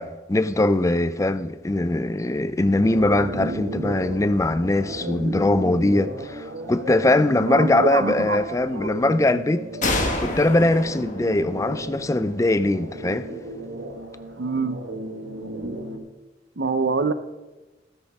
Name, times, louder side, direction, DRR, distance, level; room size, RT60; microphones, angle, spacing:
voice 1, 0.0-9.7 10.2-13.3, left 2 dB, 15° left, 0.4 m, -21 dB
sound 1, 2.8-16.0, right 1 dB, 90° right, 1.6 m, -34 dB
voice 2, 7.4-8.4 8.7-8.9 14.4-14.8 16.6-17.1, right 4 dB, 70° right, 0.8 m, -25 dB
sound 2, 9.8-13.3, left 2 dB, 45° left, 1.9 m, -29 dB
13.5 x 13.0 x 3.6 m
head